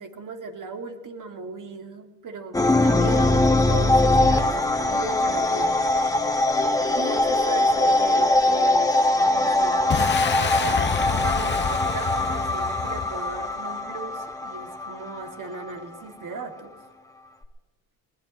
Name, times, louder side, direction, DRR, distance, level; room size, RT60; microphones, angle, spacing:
voice 1, 0.0-6.1 6.9-8.9 9.2-16.7, right 4 dB, 50° right, 4 dB, 2.6 m, -37 dB
sound 1, 2.5-16.0, left 2 dB, 10° left, 1.7 m, -22 dB
Boom, 9.9-13.5, left 7 dB, 30° left, 0.7 m, -28 dB
20.5 x 20.0 x 3.2 m, 1.2 s
cardioid pair, 85°, 39 cm